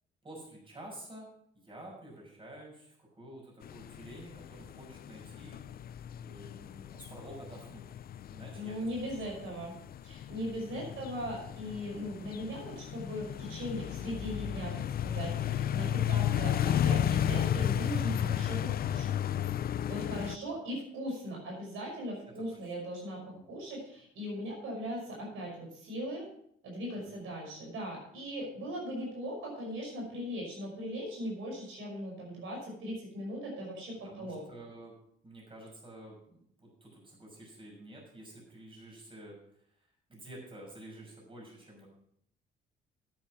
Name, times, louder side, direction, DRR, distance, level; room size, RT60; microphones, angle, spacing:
voice 1, 0.2-1.3 1.5-5.6 6.2-7.8 8.3-8.9 10.7-11.0 20.0-20.3 22.5-22.7 23.3-23.5 26.9-27.2 34.0-35.0 35.2-39.3 40.1-41.9, right 1 dB, 25° right, -1 dB, 5.9 m, -50 dB
sound 1, 3.6-20.4, left 10 dB, 50° left, 0.4 m, -33 dB
voice 2, 8.5-9.7 10.0-19.1 19.9-26.2 26.6-34.4, equal, 85° right, -2 dB, 5.8 m, -39 dB
10.0 x 9.0 x 5.9 m, 0.69 s
cardioid pair, 90°, 20 cm